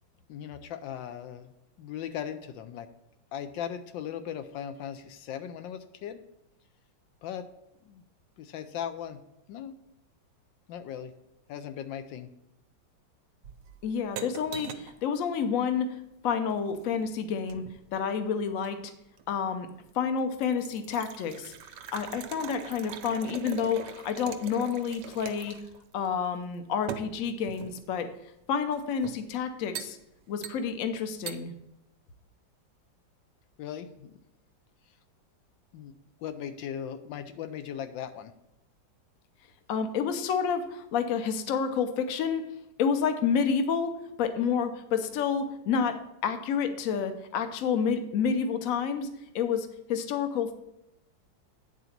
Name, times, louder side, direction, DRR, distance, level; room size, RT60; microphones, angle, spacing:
voice 1, 0.3-1.5 1.8-2.9 3.3-6.2 7.2-7.5 7.8-8.0 8.4-9.2 9.5-9.7 10.7-11.1 11.5-12.3 33.6-34.2 35.7-35.9 36.2-38.3, left 9 dB, 80° left, 9 dB, 1.3 m, -38 dB
sound 1, 13.4-15.0 16.5-17.9 18.6-19.3 19.8-19.9 20.2-25.8 26.0-26.1 26.9-27.9 28.7-29.3 29.7-30.0 30.4-30.9 31.3-31.4, right 8 dB, 75° right, 1.2 m, -42 dB
voice 2, 13.8-16.0 16.2-17.6 17.9-18.8 19.3-19.7 19.9-21.5 21.9-25.6 25.9-28.1 28.5-30.0 30.3-31.5 39.7-42.4 42.8-43.9 44.2-49.1 49.3-50.5, left 6 dB, 60° left, 8 dB, 1.0 m, -29 dB
9.5 x 4.0 x 5.8 m, 0.87 s
omnidirectional pair, 2.0 m